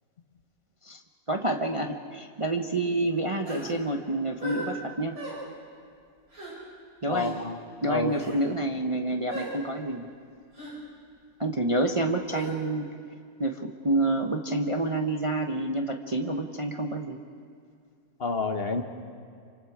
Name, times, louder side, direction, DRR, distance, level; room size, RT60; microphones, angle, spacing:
voice 1, 1.3-5.2 7.0-7.3 7.8-10.1 11.4-12.9 13.4-17.2, right 2 dB, 25° right, 3 dB, 0.8 m, -28 dB
sound 1, 3.4-3.7 4.4-4.7 5.1-5.4 6.3-6.5 7.1-7.3 8.1-8.4 9.3-9.5 10.5-10.8 12.3-12.5, right 1 dB, 70° right, 8.1 m, -37 dB
voice 2, 7.1-7.6 7.9-8.1 18.2-18.8, left 3 dB, 45° left, 6 dB, 1.3 m, -28 dB
28.0 x 25.5 x 4.9 m, 2.2 s
omnidirectional pair, 1.6 m